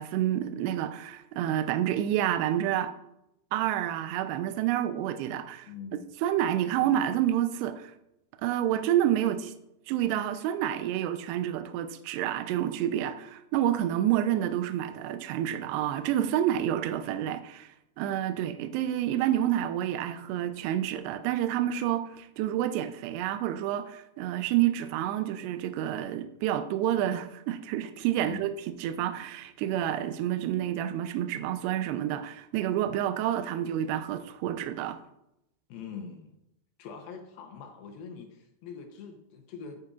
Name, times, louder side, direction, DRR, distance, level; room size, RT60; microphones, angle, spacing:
voice 1, 0.0-2.9 3.5-5.7 6.2-7.9 8.4-9.5 9.9-28.5 28.8-35.0, right 11 dB, 80° right, 2.6 m, -29 dB
voice 2, 5.7-6.1 6.8-6.9 28.2-28.5 35.7-36.4 36.8-39.8, left 6 dB, 75° left, 2.4 m, -43 dB
11.0 x 9.1 x 2.4 m
omnidirectional pair, 4.9 m